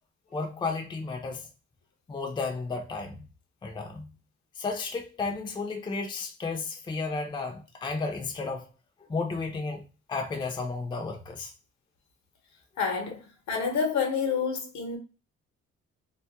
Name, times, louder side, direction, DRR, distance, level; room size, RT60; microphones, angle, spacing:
voice 1, 0.3-1.5 2.1-3.3 3.6-4.1 4.6-8.7 9.1-9.8 10.1-11.5, left 4 dB, 15° left, 0.4 m, -33 dB
voice 2, 12.8-13.2 13.5-15.0, left 5 dB, 65° left, 0.8 m, -28 dB
2.3 x 2.1 x 2.6 m
cardioid pair, 90°, 30 cm